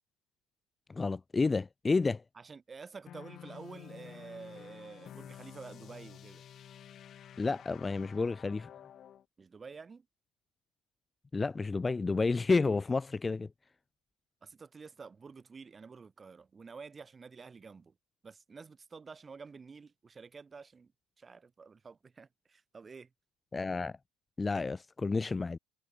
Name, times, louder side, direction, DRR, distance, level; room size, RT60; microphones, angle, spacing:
voice 1, 0.9-2.2 7.4-8.7 11.3-13.5 23.5-24.0 24.4-25.6, left 4 dB, 20° left, 0.5 m, -30 dB
voice 2, 2.4-6.4 9.4-10.1 14.4-17.9 18.2-20.9 21.2-23.1, right 5 dB, 25° right, 5.2 m, -49 dB
sound 1, 3.1-9.2, left 10 dB, 45° left, 3.3 m, -51 dB
supercardioid pair, 85°, 0 cm